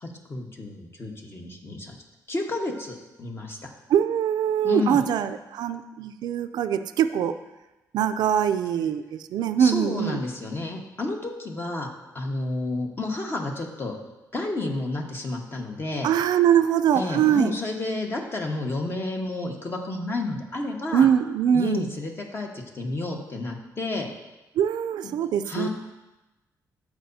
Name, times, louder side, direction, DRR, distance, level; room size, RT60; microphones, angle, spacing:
voice 1, 0.0-2.0 2.3-3.7 4.6-5.0 9.6-11.9 12.1-14.0 14.3-16.1 16.9-21.1 21.5-24.1 25.0-25.1 25.4-25.7, left 2 dB, 35° left, 1 dB, 1.4 m, -31 dB
voice 2, 3.9-7.3 7.9-9.0 9.3-10.2 16.0-17.5 20.9-21.8 24.6-25.7, right 9 dB, 80° right, 9 dB, 0.4 m, -22 dB
14.0 x 4.9 x 2.7 m, 1.1 s
cardioid pair, 85°, 7 cm